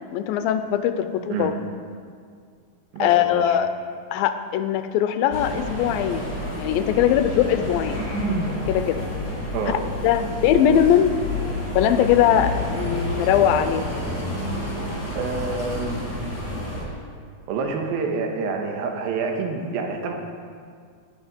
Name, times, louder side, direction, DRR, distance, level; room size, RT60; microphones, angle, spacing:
voice 1, 0.1-1.5 3.0-3.7 4.1-8.1 8.7-9.0 9.7-11.1 11.7-13.9, left 10 dB, 85° left, 10 dB, 2.4 m, -21 dB
voice 2, 2.9-3.6 9.5-9.8 10.2-10.4 15.1-16.0 17.5-20.1, right 4 dB, 80° right, 3 dB, 3.0 m, -27 dB
sound 1, 5.3-16.8, left 1 dB, 50° left, 4.9 m, -29 dB
17.5 x 7.3 x 5.3 m, 2.1 s
omnidirectional pair, 4.2 m